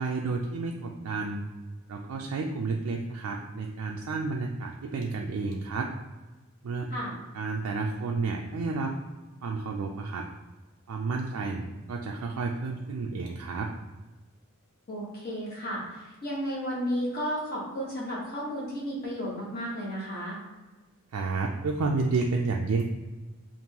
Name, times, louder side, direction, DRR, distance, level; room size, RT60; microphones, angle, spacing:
voice 1, 0.0-1.4 1.9-5.9 6.6-6.9 7.3-8.9 9.4-10.3 10.9-13.7 21.1-22.8, right 3 dB, 85° right, 0 dB, 0.4 m, -31 dB
voice 2, 14.9-20.4, equal, 45° left, -5 dB, 1.3 m, -33 dB
5.2 x 2.6 x 2.9 m, 1.2 s
head